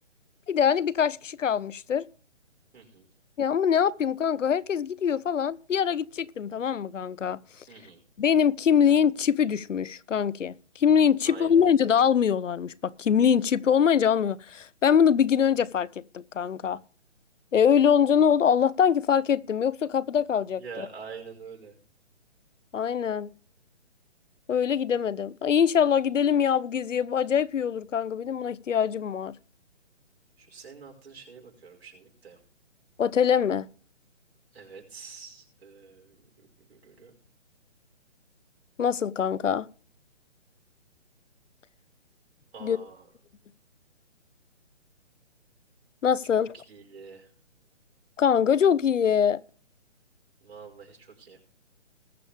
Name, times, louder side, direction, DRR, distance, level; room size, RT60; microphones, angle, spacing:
voice 1, 0.5-2.0 3.4-7.4 8.2-16.8 17.5-20.9 22.7-23.3 24.5-29.3 33.0-33.7 38.8-39.7 42.6-42.8 46.0-46.5 48.2-49.4, left 8 dB, 85° left, 0.8 m, -23 dB
voice 2, 2.7-3.1 7.7-8.0 11.2-11.8 20.6-21.8 30.4-32.4 34.5-36.3 36.7-37.1 42.5-43.1 46.5-47.3 50.4-51.4, right 5 dB, 55° right, 5.2 m, -46 dB
20.5 x 7.0 x 3.4 m
hypercardioid pair, 165°, 36 cm